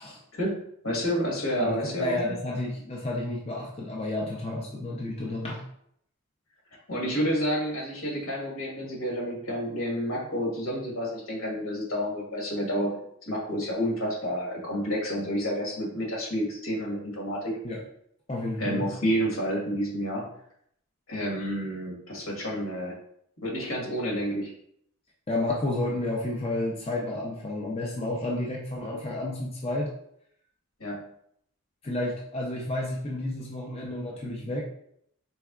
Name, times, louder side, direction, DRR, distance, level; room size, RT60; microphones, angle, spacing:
voice 1, 0.4-2.2 6.9-12.9 13.2-17.5 18.6-20.3 21.1-22.9 23.4-24.5 30.8-31.1, equal, 80° left, -2 dB, 1.4 m, -29 dB
voice 2, 1.6-5.6 17.6-17.8 18.3-18.9 25.3-29.9 31.8-34.6, left 2 dB, 30° left, -3 dB, 0.5 m, -31 dB
4.2 x 3.4 x 2.3 m, 0.70 s
head